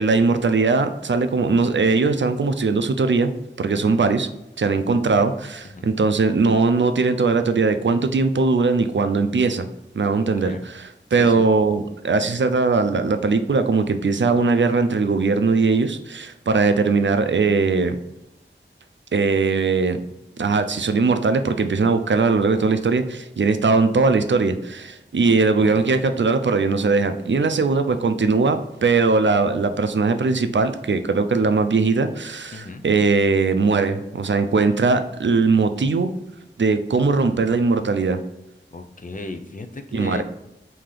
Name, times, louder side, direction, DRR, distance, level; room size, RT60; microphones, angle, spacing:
voice 1, 0.0-3.3 3.6-4.3 4.6-9.7 9.9-18.0 19.1-20.0 20.4-36.1 36.6-38.2 39.9-40.2, right 4 dB, 75° right, 8 dB, 0.4 m, -20 dB
voice 2, 3.7-4.1 5.7-5.9 10.4-10.7 11.1-11.4 25.6-25.9 32.5-32.8 38.7-40.2, left 2 dB, 45° left, 7 dB, 0.5 m, -36 dB
3.8 x 2.8 x 3.2 m, 0.88 s
wide cardioid pair, 45°, 19 cm